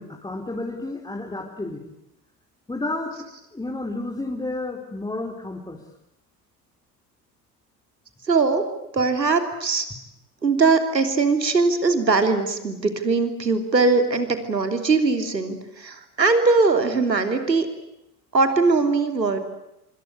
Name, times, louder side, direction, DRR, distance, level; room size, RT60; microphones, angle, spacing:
voice 1, 0.0-1.8 2.7-5.8, left 2 dB, 10° left, 0 dB, 4.5 m, -31 dB
voice 2, 8.2-8.7 8.9-9.9 10.4-17.7 18.3-19.4, right 4 dB, 90° right, 7 dB, 3.3 m, -21 dB
27.0 x 25.5 x 8.3 m, 0.87 s
figure-of-eight pair, 75°, 49 cm